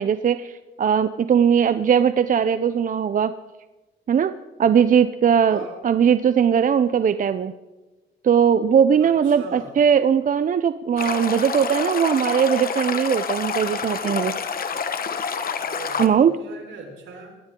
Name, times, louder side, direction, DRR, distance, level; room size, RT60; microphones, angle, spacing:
voice 1, 0.0-3.3 4.1-4.3 4.6-7.5 8.2-14.3 16.0-16.3, right 7 dB, 45° right, 12 dB, 0.6 m, -19 dB
voice 2, 5.5-5.8 9.0-9.7 15.6-17.4, right 4 dB, 75° right, 2 dB, 4.6 m, -39 dB
Stream, 11.0-16.1, left 6 dB, 45° left, 1.4 m, -28 dB
21.0 x 16.0 x 3.8 m, 1.2 s
cardioid pair, 90°, 20 cm